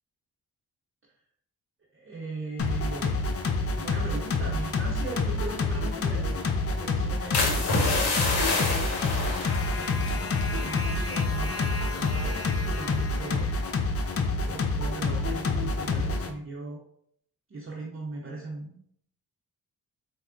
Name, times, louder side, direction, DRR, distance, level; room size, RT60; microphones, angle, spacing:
voice 1, 1.9-3.2 3.6-6.5 6.8-8.8 9.7-12.4 12.7-13.5 14.4-16.8 17.5-18.8, right 3 dB, 35° right, -3 dB, 0.7 m, -39 dB
sound 1, 2.6-16.3, left 3 dB, 40° left, 0.5 m, -28 dB
sound 2, 7.3-11.7 12.2-12.5, left 3 dB, 75° left, 0.8 m, -28 dB
4.2 x 2.1 x 2.4 m, 0.68 s
supercardioid pair, 45°, 39 cm